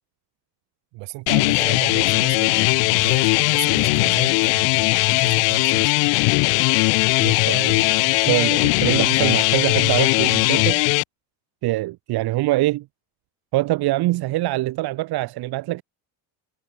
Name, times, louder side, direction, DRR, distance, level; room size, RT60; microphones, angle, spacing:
voice 1, 0.9-5.9, right 24 dB, 80° right, 6.7 m, -35 dB
sound 1, 1.3-11.0, left 32 dB, 90° left, 0.6 m, -19 dB
voice 2, 7.2-10.8 11.6-12.9 13.5-15.8, right 18 dB, 60° right, 3.2 m, -24 dB
cardioid pair, 160°, 43 cm